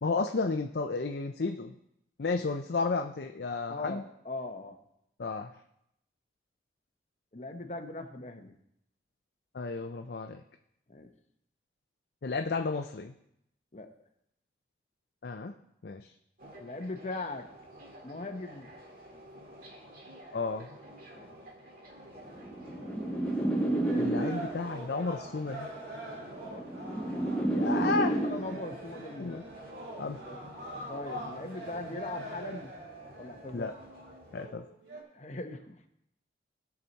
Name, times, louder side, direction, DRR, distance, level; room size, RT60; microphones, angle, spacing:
voice 1, 0.0-1.7 2.2-4.0 5.2-5.5 9.5-10.4 12.2-13.1 15.2-15.5 15.8-16.1 20.3-20.7 24.0-25.7 27.5-28.2 29.2-29.4 30.0-30.2 33.5-33.7 34.3-34.6, left 4 dB, 60° left, 5 dB, 0.5 m, -32 dB
voice 2, 3.7-4.8 7.3-8.5 10.9-11.1 13.7-13.9 16.6-17.5 18.0-18.7 21.1-21.3 26.5-26.6 28.2-29.4 30.0-30.5 30.9-32.7 33.2-33.7 35.1-35.9, left 2 dB, 40° left, 5 dB, 1.0 m, -40 dB
sound 1, 16.4-34.5, equal, 50° right, 2.0 m, -50 dB
sound 2, 22.4-24.7 25.8-28.7, right 1 dB, 5° left, 0.7 m, -30 dB
sound 3, 23.8-35.0, right 1 dB, 70° right, 2.5 m, -44 dB
17.5 x 5.9 x 4.1 m, 0.78 s
head